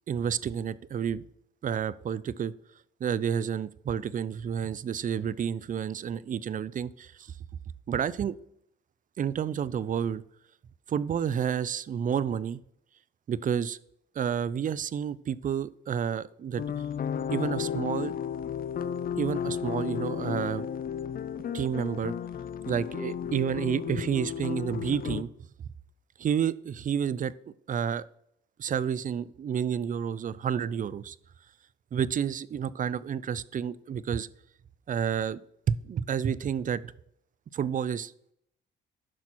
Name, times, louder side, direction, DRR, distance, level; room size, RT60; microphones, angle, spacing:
voice 1, 0.1-1.2 1.6-2.5 3.0-7.4 7.9-8.4 9.2-10.2 10.9-12.6 13.3-13.8 14.2-16.6 17.3-18.1 19.1-20.7 21.5-22.1 22.7-25.3 26.2-27.3 27.7-28.0 28.6-31.2 31.9-34.3 34.9-35.4 35.7-36.9 37.5-38.1, right 8 dB, 40° right, 19 dB, 0.5 m, -30 dB
sound 1, 16.6-25.2, left 8 dB, 45° left, 0.5 m, -33 dB
11.0 x 6.0 x 4.2 m, 0.73 s
cardioid pair, 90°, 20 cm